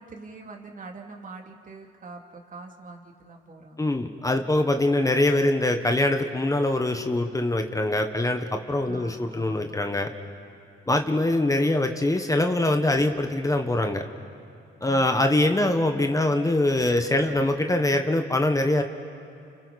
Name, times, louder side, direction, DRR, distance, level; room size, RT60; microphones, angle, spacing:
voice 1, 0.0-3.9 8.9-9.8 14.8-15.5, right 3 dB, 40° right, 2 dB, 2.6 m, -44 dB
voice 2, 3.8-10.1 10.9-14.0 14.8-18.8, left 1 dB, 15° left, 5 dB, 1.3 m, -23 dB
30.0 x 29.5 x 4.2 m, 2.5 s
cardioid pair, 90°, 20 cm